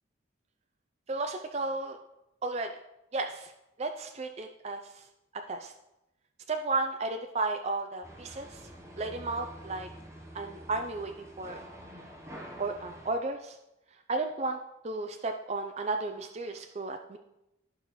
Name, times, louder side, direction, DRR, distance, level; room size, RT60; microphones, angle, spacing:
voice 1, 1.1-2.0 2.4-2.7 3.1-3.5 3.8-5.1 5.3-5.7 6.5-8.7 9.0-9.9 10.3-11.6 12.6-13.6 14.1-14.6 14.8-17.2, right 3 dB, 30° right, 5 dB, 0.4 m, -33 dB
sound 1, 8.0-13.1, equal, 15° right, 0.8 m, -47 dB
13.5 x 4.8 x 3.0 m, 0.89 s
head